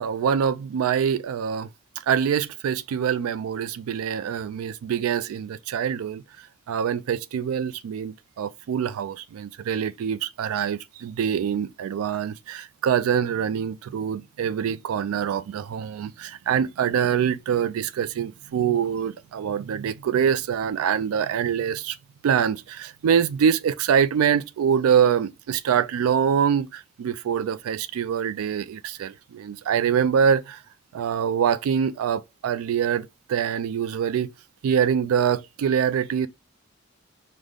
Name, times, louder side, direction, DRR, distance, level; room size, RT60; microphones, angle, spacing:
voice 1, 0.0-1.7 2.1-6.2 6.7-22.0 22.2-30.6 30.9-34.3 34.6-36.3, right 8 dB, 85° right, 0.3 m, -24 dB
4.9 x 2.1 x 3.6 m
head